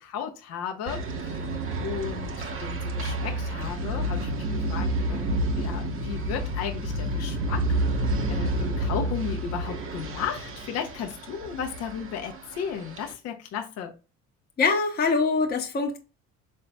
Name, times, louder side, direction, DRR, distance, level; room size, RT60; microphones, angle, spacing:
voice 1, 0.0-1.5 1.8-7.8 8.3-13.9, left 8 dB, 55° left, 0.7 m, -35 dB
sound 1, 0.9-13.1, right 1 dB, 40° right, 1.0 m, -30 dB
voice 2, 14.6-16.0, left 4 dB, 30° left, 0.9 m, -23 dB
5.3 x 3.9 x 2.2 m
supercardioid pair, 80°, 31 cm